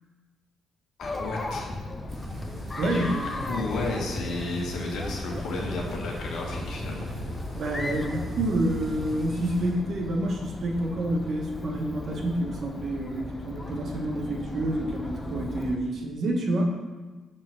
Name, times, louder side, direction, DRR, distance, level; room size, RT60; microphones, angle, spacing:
voice 1, 1.0-1.7 2.8-3.1 3.4-7.1, left 2 dB, 75° left, -1 dB, 1.4 m, -32 dB
Chatter, 1.0-15.8, left 2 dB, 25° left, 0.6 m, -37 dB
sound 1, 2.1-9.7, equal, 30° right, 2.1 m, -38 dB
voice 2, 2.8-3.3 7.5-16.6, right 1 dB, 60° right, 1 dB, 1.1 m, -28 dB
5.1 x 4.2 x 5.8 m, 1.3 s
cardioid pair, 90°, 0 cm